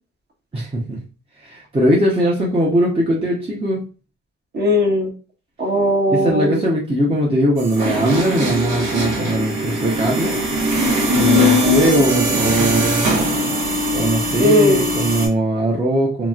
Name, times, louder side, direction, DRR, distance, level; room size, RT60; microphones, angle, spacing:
voice 1, 0.5-1.0 1.4-3.8 6.1-10.4 11.1-13.2 13.9-16.3, equal, 20° right, -3 dB, 0.8 m, -20 dB
voice 2, 4.5-5.1 5.6-6.6 14.4-14.9, left 1 dB, 35° right, 1 dB, 1.1 m, -17 dB
sound 1, 7.6-15.3, equal, 85° right, 1.2 m, -20 dB
2.9 x 2.8 x 2.4 m, 0.35 s
cardioid pair, 90°, 30 cm